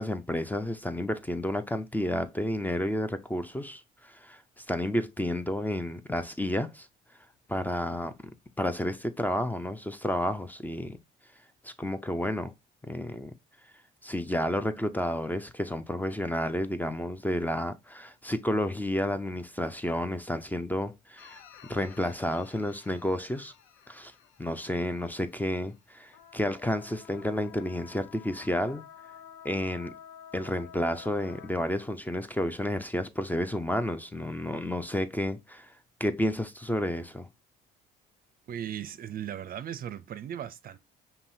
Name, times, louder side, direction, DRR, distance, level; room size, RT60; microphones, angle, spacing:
voice 1, 0.0-6.9 7.5-8.1 8.6-11.0 11.6-12.5 12.9-13.3 14.0-21.4 21.7-23.5 23.9-24.1 24.4-28.8 29.4-29.9 30.3-35.7 36.0-37.3, left 1 dB, 10° left, 0.4 m, -31 dB
sound 1, 21.2-25.8 26.1-31.5, left 9 dB, 70° left, 0.6 m, -51 dB
voice 2, 38.5-40.8, right 10 dB, 45° right, 0.5 m, -37 dB
5.4 x 2.7 x 2.6 m
supercardioid pair, 70°, 20 cm